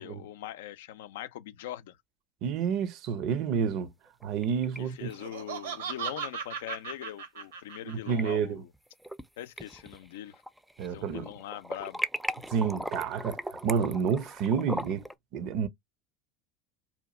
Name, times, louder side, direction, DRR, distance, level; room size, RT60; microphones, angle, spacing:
voice 1, 0.0-2.0 4.8-8.7 9.4-10.4 10.8-12.0, left 12 dB, 75° left, 0.4 m, -42 dB
voice 2, 2.4-3.9 4.2-5.1 7.8-8.6 10.8-11.3 12.5-15.0 15.3-15.7, right 6 dB, 55° right, 0.6 m, -29 dB
sound 1, 4.1-4.8 5.1-5.2 6.7-6.8 7.9-8.2 8.7-9.3 9.6-10.9 11.2-15.1, right 1 dB, 5° right, 0.4 m, -37 dB
Laughter, 5.1-8.3, right 7 dB, 80° right, 0.9 m, -37 dB
2.8 x 2.4 x 4.1 m
hypercardioid pair, 75°, 0 cm